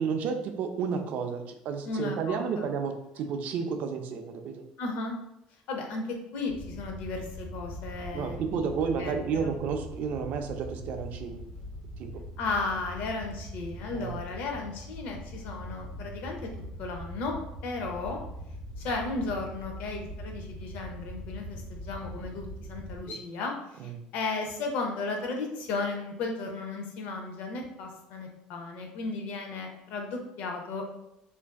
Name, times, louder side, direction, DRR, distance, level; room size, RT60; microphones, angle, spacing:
voice 1, 0.0-4.6 8.1-11.4 12.0-12.2 13.9-14.2 23.1-23.2 23.8-24.0, right 6 dB, 55° right, 6 dB, 0.3 m, -31 dB
voice 2, 1.8-2.7 4.8-5.2 5.7-8.7 9.0-9.5 12.4-16.5 16.8-17.3 17.6-18.2 18.8-30.8, left 3 dB, 65° left, 2 dB, 0.5 m, -35 dB
Wind / Boat Water vehicle, 6.5-23.0, equal, 50° left, 1.2 m, -42 dB
2.5 x 2.3 x 2.2 m, 0.80 s
cardioid pair, 125°, 3 cm